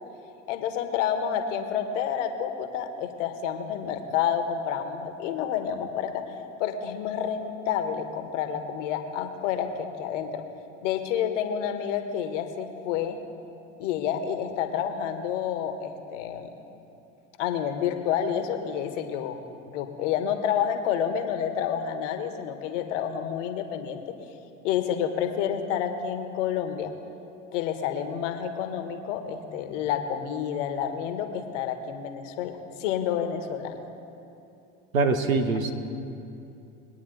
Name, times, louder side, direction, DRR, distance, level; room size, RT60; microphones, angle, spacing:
voice 1, 0.5-6.2 6.6-10.4 10.8-13.2 13.8-16.5 17.4-19.4 19.6-24.1 24.6-26.9 27.5-33.8, left 8 dB, 65° left, 7 dB, 1.3 m, -29 dB
voice 2, 34.9-35.7, right 4 dB, 90° right, 8 dB, 1.0 m, -23 dB
21.5 x 9.3 x 3.9 m, 2.8 s
hypercardioid pair, 75°, 40 cm